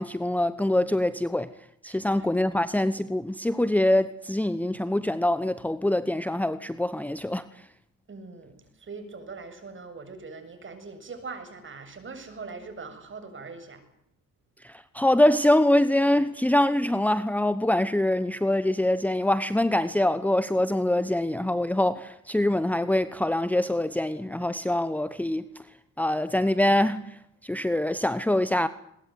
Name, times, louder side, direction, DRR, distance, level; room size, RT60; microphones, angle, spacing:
voice 1, 0.0-1.5 1.8-7.5 14.6-25.4 26.0-27.2 27.4-28.7, left 1 dB, 5° left, 1.0 m, -24 dB
voice 2, 1.8-2.1 8.1-13.8, right 4 dB, 40° right, 7.6 m, -41 dB
23.0 x 21.5 x 9.5 m
cardioid pair, 90°, 30 cm